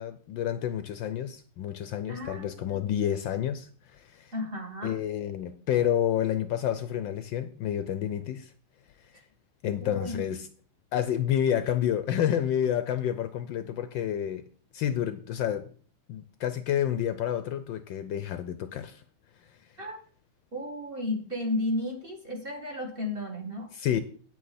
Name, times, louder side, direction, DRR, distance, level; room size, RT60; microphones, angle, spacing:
voice 1, 0.0-4.3 4.8-8.5 9.6-10.5 10.9-14.4 14.7-15.7 16.1-19.0 23.7-24.0, left 10 dB, 75° left, 11 dB, 1.2 m, -29 dB
voice 2, 2.1-3.0 4.3-5.0 9.8-10.2 19.8-20.0 20.5-23.7, left 1 dB, 30° right, 3 dB, 1.7 m, -33 dB
9.0 x 8.6 x 4.2 m, 0.43 s
omnidirectional pair, 2.4 m